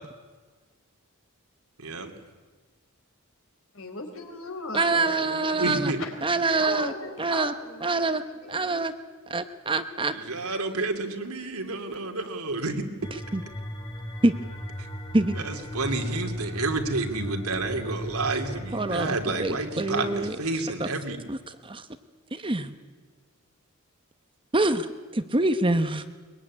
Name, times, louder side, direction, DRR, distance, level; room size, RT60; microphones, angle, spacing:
voice 1, 1.8-2.1 5.6-6.0 10.1-12.8 15.4-21.2, right 3 dB, 85° right, 4 dB, 2.9 m, -30 dB
voice 2, 3.7-6.1 6.6-8.8, left 2 dB, 65° left, 5 dB, 4.2 m, -38 dB
voice 3, 4.7-5.9 6.2-6.9 7.2-7.5 7.8-8.2 8.5-8.9 9.3-10.1 13.3-13.4 14.2-14.3 15.1-15.4 18.7-20.4 20.8-20.9 21.3-21.4 21.6-21.9 22.3-22.7 24.5-26.1, right 2 dB, 25° right, 10 dB, 1.0 m, -25 dB
sound 1, 13.0-20.3, equal, 20° left, 1.7 m, -37 dB
22.5 x 22.0 x 9.8 m, 1.4 s
head